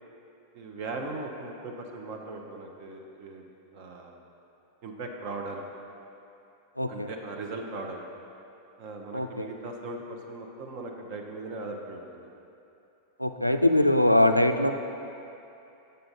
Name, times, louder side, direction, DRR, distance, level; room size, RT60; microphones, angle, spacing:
voice 1, 0.5-4.2 4.8-5.6 6.9-8.0 8.8-12.3, right 2 dB, 45° right, 2 dB, 0.7 m, -39 dB
voice 2, 6.8-7.1 9.1-9.5 13.2-14.7, left 1 dB, 90° left, 7 dB, 0.3 m, -22 dB
7.8 x 6.6 x 3.9 m, 2.8 s
figure-of-eight pair, 90°, 0 cm